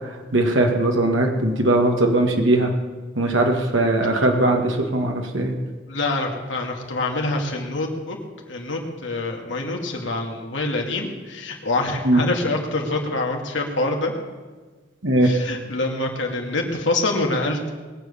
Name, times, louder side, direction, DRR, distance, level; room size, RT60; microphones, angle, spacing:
voice 1, 0.3-2.7 3.2-5.5 12.0-12.2 15.0-15.3, right 1 dB, 90° right, 2 dB, 1.7 m, -19 dB
voice 2, 5.9-8.2 8.5-14.1 15.2-17.7, left 2 dB, 80° left, 1 dB, 2.4 m, -26 dB
20.5 x 7.7 x 6.9 m, 1.4 s
head